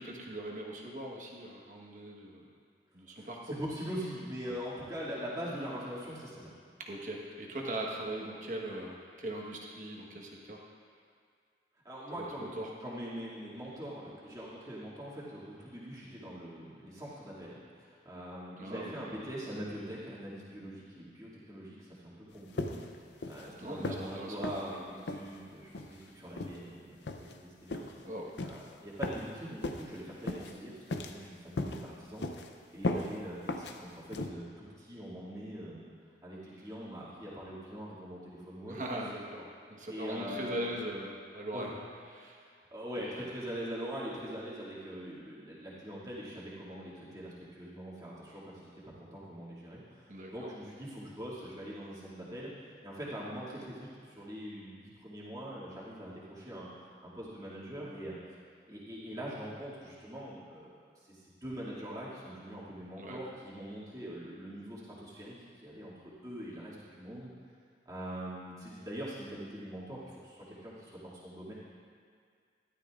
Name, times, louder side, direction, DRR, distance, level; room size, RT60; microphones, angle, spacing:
voice 1, 0.0-2.5 2.9-3.6 4.4-4.6 6.8-10.6 12.1-12.7 18.6-19.1 23.6-24.4 28.0-28.3 38.7-41.7 42.1-42.4 43.2-43.3 50.1-50.5 63.0-63.2, right 1 dB, 45° right, -1 dB, 1.3 m, -40 dB
voice 2, 3.2-6.5 11.8-22.9 23.3-28.1 28.4-32.2 32.7-35.9 36.2-38.8 39.9-40.8 41.5-41.7 42.7-52.5 52.8-56.7 57.0-58.2 58.7-60.7 61.1-67.3 67.9-71.5, equal, 20° right, -9 dB, 2.3 m, -43 dB
sound 1, 22.6-23.0 23.2-23.5 23.8-24.1 24.4-24.6 25.1-25.3 25.7-26.0 26.4-26.6 27.1-27.4 27.7-27.9 28.4-28.6 29.0-29.3 29.6-29.9 30.3-30.5 30.9-31.3 31.6-31.8 32.2-32.5 32.8-33.1 33.5-33.8 34.1-34.3, left 2 dB, 80° left, 0.6 m, -36 dB
13.5 x 11.5 x 2.5 m, 2.1 s
head